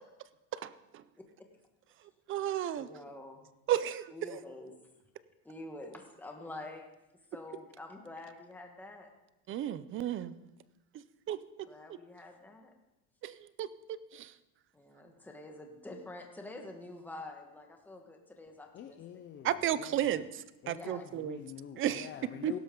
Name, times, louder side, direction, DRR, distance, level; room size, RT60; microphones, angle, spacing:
voice 1, 1.2-1.5 2.7-3.5 4.1-4.7 5.4-6.9 7.3-9.1 11.6-12.7 14.7-19.0 20.6-21.0 22.4-22.6, left 2 dB, 5° left, 2 dB, 1.3 m, -47 dB
voice 2, 2.3-2.9 3.7-4.1 9.5-10.3 11.3-11.4 13.2-13.3 13.6-13.7 14.1-14.3 19.4-21.4 21.8-22.1 22.4-22.5, right 11 dB, 30° right, 16 dB, 0.5 m, -32 dB
voice 3, 18.7-20.2 20.6-22.6, left 9 dB, 30° left, 6 dB, 0.5 m, -47 dB
16.5 x 12.5 x 3.7 m, 0.94 s
cardioid pair, 155°, 41 cm